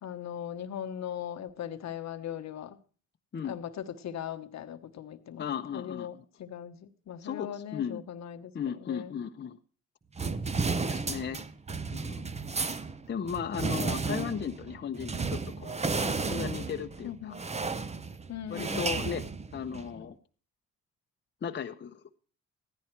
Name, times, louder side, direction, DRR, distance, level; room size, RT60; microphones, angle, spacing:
voice 1, 0.0-2.8 3.4-5.5 5.7-9.1 17.0-17.4 18.3-19.0 19.7-19.8, left 9 dB, 60° left, 9 dB, 1.1 m, -39 dB
voice 2, 5.4-6.2 7.2-8.0 8.5-9.6 10.6-11.4 11.9-12.3 13.1-17.4 18.5-19.2 19.5-20.1 21.4-22.0, left 7 dB, 35° left, 6 dB, 0.9 m, -36 dB
sound 1, 10.2-20.0, right 4 dB, 20° right, 0.8 m, -33 dB
15.0 x 11.0 x 4.5 m, 0.40 s
cardioid pair, 90°, 30 cm